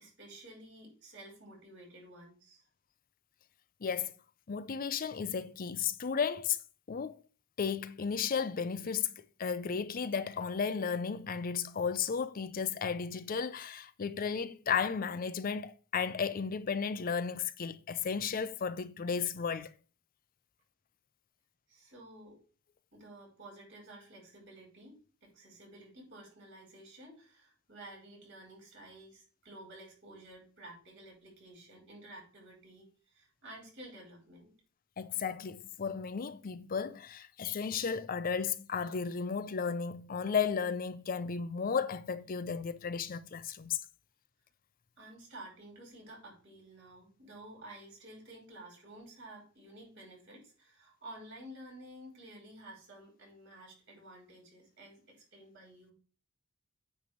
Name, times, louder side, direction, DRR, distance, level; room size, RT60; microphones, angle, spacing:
voice 1, 0.0-2.6 21.7-22.4 22.9-34.5 45.0-55.9, right 1 dB, 60° right, 5.3 m, -52 dB
voice 2, 3.8-4.1 4.5-6.6 6.9-7.1 7.6-9.1 9.4-19.7 35.0-43.8, left 6 dB, 45° left, 0.5 m, -34 dB
9.2 x 3.4 x 6.7 m
head